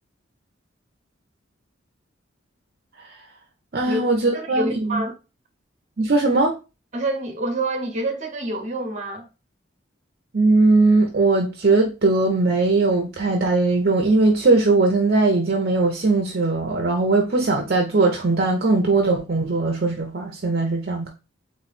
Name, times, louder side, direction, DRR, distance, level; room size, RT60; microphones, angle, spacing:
voice 1, 3.7-5.0 6.0-6.5 10.3-21.1, right 3 dB, 50° right, 0.7 m, -19 dB
voice 2, 4.3-5.1 6.9-9.2, right 1 dB, 35° right, 1.0 m, -27 dB
3.7 x 3.1 x 4.2 m
head